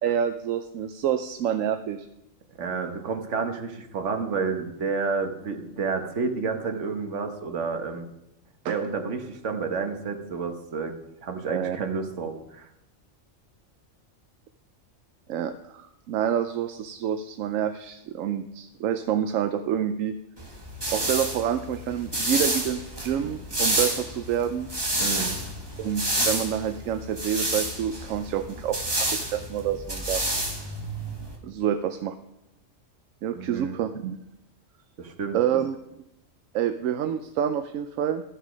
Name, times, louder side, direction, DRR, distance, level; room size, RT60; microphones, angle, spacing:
voice 1, 0.0-2.1 8.6-8.7 11.5-11.8 15.3-20.1 20.9-24.7 25.8-30.3 31.4-32.1 33.2-34.2 35.3-35.8 36.5-38.2, right 9 dB, 85° right, 9 dB, 1.0 m, -28 dB
voice 2, 2.6-8.1 8.7-10.9 11.2-12.7 25.0-25.4 33.3-33.8 35.0-35.4, right 5 dB, 70° right, 5 dB, 1.5 m, -30 dB
sound 1, 20.4-31.4, right 1 dB, 20° right, 1.7 m, -29 dB
13.0 x 7.3 x 5.1 m, 0.87 s
omnidirectional pair, 1.3 m